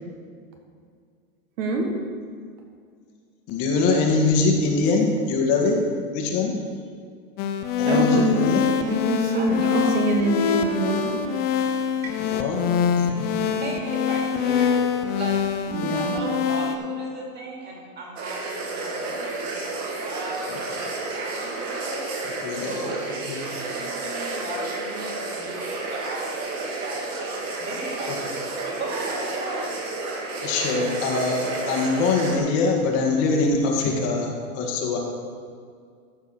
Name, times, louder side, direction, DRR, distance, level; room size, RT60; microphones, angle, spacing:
voice 1, 1.6-1.9 7.8-8.5 8.9-11.1 15.7-16.1, right 2 dB, 60° right, 3 dB, 1.7 m, -24 dB
voice 2, 3.5-5.8 6.1-6.6 7.8-8.6 12.2-12.6 13.0-13.3 22.4-22.9 23.3-23.4 28.1-28.2 30.4-35.0, left 3 dB, 40° left, 0 dB, 1.7 m, -23 dB
sound 1, 7.4-16.8, left 7 dB, 25° left, 0.5 m, -24 dB
voice 3, 9.3-9.9 12.0-12.2 13.1-14.8 15.1-15.4 15.9-22.1 22.6-23.4 23.7-29.7, right 2 dB, 20° right, -1 dB, 2.6 m, -36 dB
sound 2, 18.2-32.4, right 3 dB, 40° right, 2.1 m, -31 dB
14.0 x 4.8 x 6.2 m, 2.1 s
supercardioid pair, 140°, 44 cm